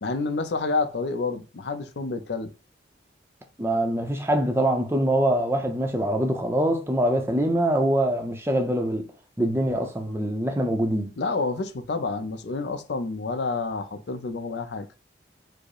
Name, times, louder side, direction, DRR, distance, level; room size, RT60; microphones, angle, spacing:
voice 1, 0.0-2.5 11.2-14.9, left 3 dB, 75° left, 0.5 m, -29 dB
voice 2, 3.6-9.0 9.4-11.1, right 1 dB, 15° right, 0.5 m, -24 dB
4.7 x 2.0 x 4.6 m
head